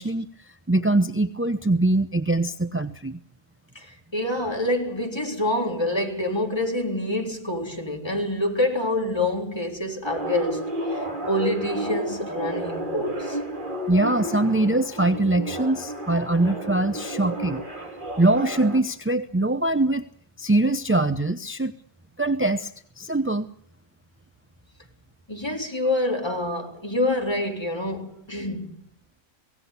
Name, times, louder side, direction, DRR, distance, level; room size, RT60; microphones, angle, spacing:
voice 1, 0.0-3.2 13.9-17.6 18.2-20.0 20.4-21.7 22.2-22.7 23.0-23.5, right 2 dB, 15° right, 0.5 m, -23 dB
voice 2, 3.8-13.4 25.3-28.8, left 1 dB, 15° left, 3.9 m, -27 dB
sound 1, 10.0-18.8, right 1 dB, 35° right, 2.8 m, -31 dB
24.0 x 18.0 x 8.3 m
omnidirectional pair, 1.6 m